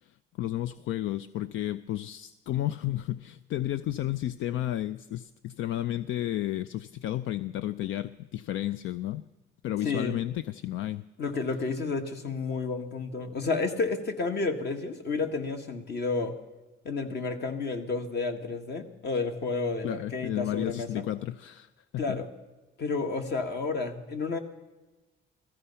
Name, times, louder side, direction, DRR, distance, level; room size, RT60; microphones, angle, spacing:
voice 1, 0.0-9.2 9.6-11.1 19.8-22.2, left 13 dB, 80° left, 14 dB, 0.5 m, -32 dB
voice 2, 9.8-10.2 11.2-16.3 16.9-21.0 22.0-22.3 22.8-24.4, left 4 dB, 55° left, 5 dB, 1.9 m, -31 dB
16.5 x 14.5 x 5.6 m, 1.1 s
cardioid pair, 90°, 20 cm